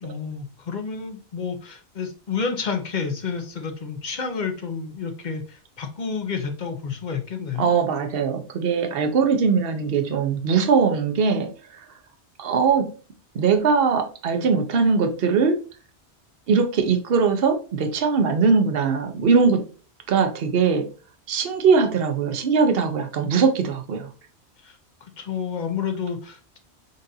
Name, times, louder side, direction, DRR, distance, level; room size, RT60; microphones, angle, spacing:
voice 1, 0.0-7.7 24.6-26.6, left 5 dB, 45° left, 6 dB, 0.8 m, -30 dB
voice 2, 7.6-11.8 12.4-12.9 13.3-15.6 16.5-19.6 20.1-20.9 21.3-24.1, right 5 dB, 60° right, 5 dB, 0.9 m, -21 dB
6.6 x 2.5 x 2.7 m, 0.37 s
omnidirectional pair, 1.1 m